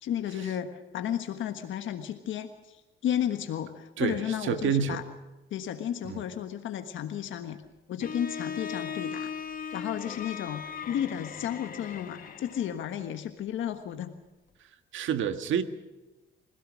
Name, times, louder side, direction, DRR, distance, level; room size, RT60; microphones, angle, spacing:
voice 1, 0.0-5.0 5.5-7.6 7.9-9.3 9.7-14.2, left 10 dB, 75° left, 7 dB, 1.4 m, -33 dB
voice 2, 4.0-5.0 6.0-6.2 14.9-15.6, right 7 dB, 75° right, 9 dB, 1.6 m, -28 dB
Bowed string instrument, 8.0-12.9, left 6 dB, 45° left, 1.8 m, -38 dB
24.5 x 17.0 x 6.4 m, 1.1 s
cardioid pair, 90°, 20 cm